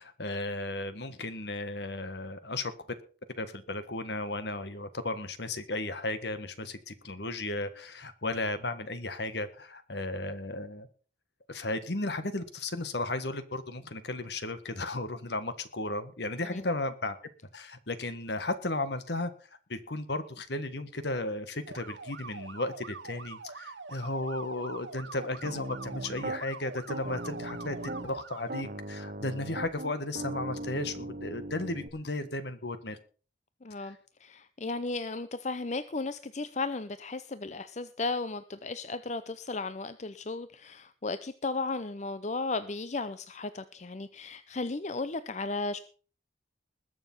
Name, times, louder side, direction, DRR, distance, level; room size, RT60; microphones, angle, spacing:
voice 1, 0.0-3.0 3.4-10.9 11.5-17.1 17.5-19.3 19.7-27.8 28.0-33.0 33.8-33.9, left 2 dB, 65° left, 12 dB, 1.6 m, -35 dB
sound 1, 21.7-28.5, right 4 dB, 80° right, 1.0 m, -45 dB
Piano, 25.4-26.4 26.9-28.1 28.5-31.9, right 2 dB, 50° right, 1.3 m, -39 dB
voice 2, 33.6-45.8, left 3 dB, 40° left, 12 dB, 0.6 m, -35 dB
21.0 x 7.0 x 5.5 m, 0.40 s
head